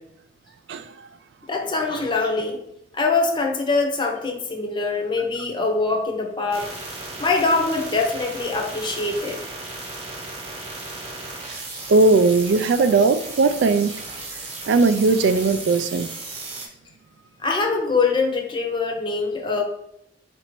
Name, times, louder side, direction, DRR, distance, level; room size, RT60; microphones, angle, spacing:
voice 1, 1.5-2.6 2.9-6.7 7.2-9.4 17.4-19.6, left 3 dB, 25° left, 2 dB, 0.7 m, -23 dB
sound 1, 6.5-16.7, right 2 dB, 40° right, 1.0 m, -35 dB
voice 2, 11.9-13.9 14.7-16.1, right 3 dB, 85° right, 12 dB, 0.3 m, -18 dB
4.1 x 2.6 x 4.5 m, 0.77 s
head